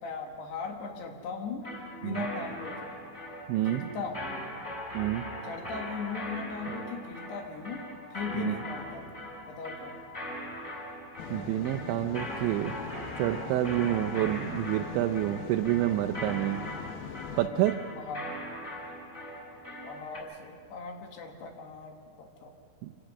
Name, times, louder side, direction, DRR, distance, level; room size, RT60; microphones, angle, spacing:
voice 1, 0.0-1.6 2.0-2.9 3.6-4.4 5.4-7.8 8.1-9.1 9.4-10.0 13.8-14.1 17.4-18.3 19.8-22.5, left 4 dB, 65° left, 3 dB, 3.3 m, -38 dB
sound 1, 1.6-20.2, equal, 15° left, 4.7 m, -40 dB
voice 2, 3.5-3.8 4.9-5.2 8.4-8.6 11.3-12.7 13.2-16.6 17.4-17.8 22.8-22.9, right 14 dB, 80° right, 4 dB, 2.8 m, -28 dB
sound 2, 11.2-17.5, left 8 dB, 85° left, 2.1 m, -42 dB
26.5 x 17.0 x 6.4 m, 2.2 s
omnidirectional pair, 5.6 m